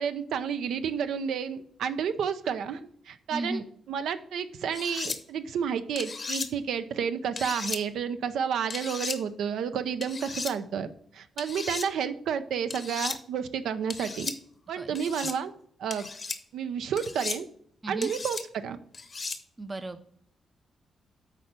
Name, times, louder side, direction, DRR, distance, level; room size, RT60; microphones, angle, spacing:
voice 1, 0.0-10.9 11.1-14.3 14.7-15.5 15.8-16.1 16.5-17.5 17.9-18.8, right 7 dB, 85° right, 10 dB, 0.6 m, -31 dB
voice 2, 3.3-3.6 14.8-15.0 15.2-15.3 17.8-18.1 19.6-20.1, right 2 dB, 20° right, 9 dB, 0.5 m, -35 dB
sound 1, 4.7-5.2 5.9-6.5 7.4-7.8 8.7-9.2 10.0-10.5 11.4-11.9 12.7-13.2 13.9-14.4 14.9-15.4 15.9-16.4 17.0-17.4 18.0-18.4 18.9-19.4, left 4 dB, 35° left, 0.8 m, -35 dB
8.3 x 4.6 x 5.2 m, 0.62 s
cardioid pair, 115°, 0 cm